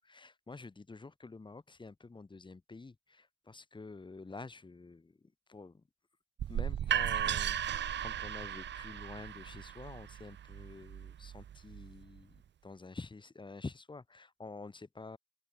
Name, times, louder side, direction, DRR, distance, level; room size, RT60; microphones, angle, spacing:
voice 1, 0.0-5.9 6.5-15.2, left 3 dB, 25° left, 4.8 m, -49 dB
sound 1, 6.4-12.2, right 10 dB, 65° right, 2.9 m, -36 dB
open air
cardioid pair, 90°, 20 cm